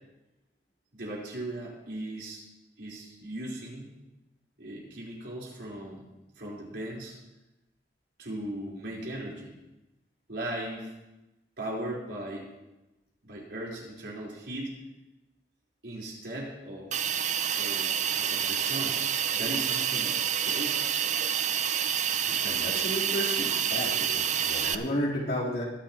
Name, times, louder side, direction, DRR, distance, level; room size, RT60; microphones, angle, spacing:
voice 1, 0.9-2.4 2.8-3.9 4.6-6.0 6.4-7.1 8.2-9.5 10.3-10.9 11.6-12.4 13.2-14.7 15.8-16.9 17.6-19.0 19.3-20.9, right 1 dB, 70° right, -4 dB, 4.1 m, -38 dB
Hiss, 16.9-24.7, right 9 dB, 40° right, 0.5 m, -28 dB
voice 2, 22.4-25.6, left 1 dB, 55° left, -5 dB, 3.7 m, -32 dB
21.0 x 11.0 x 3.0 m, 1.0 s
head